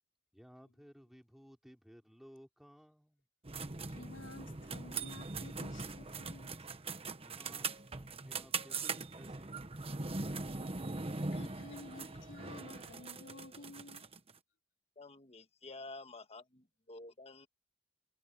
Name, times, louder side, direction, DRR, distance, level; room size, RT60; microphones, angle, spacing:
voice 1, 0.3-3.3 6.6-6.9 7.2-10.3, equal, ahead, 4.8 m, -59 dB
sound 1, 3.4-14.3, right 3 dB, 30° right, 1.2 m, -41 dB
voice 2, 3.9-6.6 11.3-14.0, left 2 dB, 80° left, 3.1 m, -52 dB
voice 3, 11.4-11.9 14.9-17.5, left 2 dB, 35° left, 1.6 m, -51 dB
head